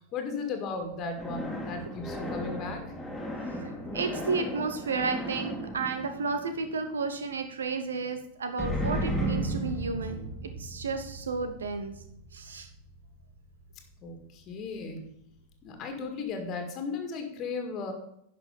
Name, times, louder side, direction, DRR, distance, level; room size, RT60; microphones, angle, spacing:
voice 1, 0.1-2.8 14.0-15.1 15.6-17.9, left 4 dB, 35° left, 5 dB, 1.9 m, -36 dB
sound 1, 1.2-7.1 8.6-13.9, right 1 dB, ahead, 2.3 m, -35 dB
voice 2, 3.6-10.2 10.6-11.9 12.3-12.7, right 4 dB, 70° right, 8 dB, 1.0 m, -32 dB
10.5 x 5.8 x 5.3 m, 0.73 s
figure-of-eight pair, 90°, 0 cm